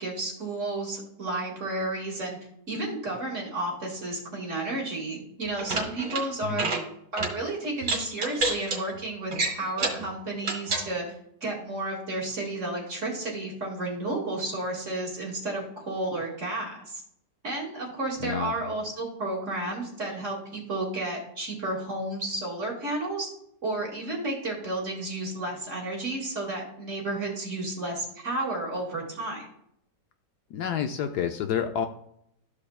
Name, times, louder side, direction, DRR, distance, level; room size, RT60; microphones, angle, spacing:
voice 1, 0.0-2.4 2.7-6.7 7.1-11.1 11.4-17.0 17.4-23.3 23.6-29.5, right 2 dB, 45° right, -2 dB, 2.3 m, -32 dB
sound 1, 5.5-6.2 6.5-6.8 7.2-7.3 7.8-8.8 9.3-10.0 10.4-10.8, right 3 dB, 65° right, 2.3 m, -28 dB
voice 2, 6.4-6.7 18.2-18.6 30.5-31.9, left 8 dB, 70° left, 6 dB, 1.1 m, -29 dB
13.5 x 4.9 x 2.3 m, 0.71 s
omnidirectional pair, 1.9 m